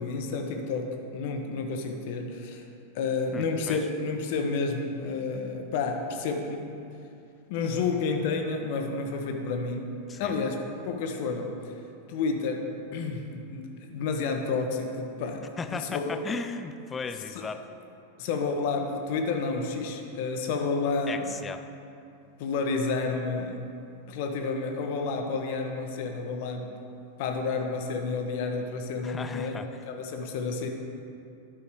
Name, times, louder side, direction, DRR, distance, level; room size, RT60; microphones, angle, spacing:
voice 1, 0.0-2.6 2.9-6.7 7.5-11.7 12.1-16.2 17.3-17.5 18.2-21.3 22.4-23.7 24.1-26.8 27.2-30.7, left 4 dB, 50° left, 4 dB, 1.0 m, -30 dB
voice 2, 3.3-3.9 10.1-10.3 15.6-17.6 21.1-21.6 29.0-29.8, left 4 dB, 20° left, 9 dB, 0.5 m, -36 dB
11.5 x 6.1 x 4.7 m, 2.6 s
figure-of-eight pair, 90°, 0 cm